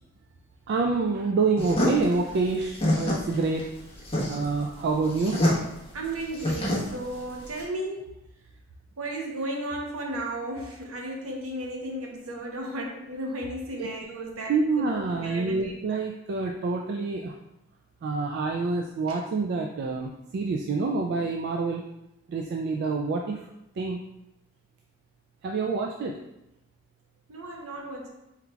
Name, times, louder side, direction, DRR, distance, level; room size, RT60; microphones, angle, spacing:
voice 1, 0.7-3.7 4.3-5.4 13.8-13.9 14.5-17.3 18.0-21.8 22.3-23.4 23.8-24.0 25.4-26.2, right 4 dB, 50° right, 2 dB, 0.3 m, -27 dB
sound 1, 1.6-7.6, left 1 dB, 25° left, 1.0 m, -27 dB
voice 2, 5.9-8.1 9.0-14.5 15.2-16.0 19.1-19.2 27.3-28.1, right 1 dB, 70° right, 0 dB, 0.8 m, -34 dB
4.3 x 3.9 x 2.3 m, 0.87 s
head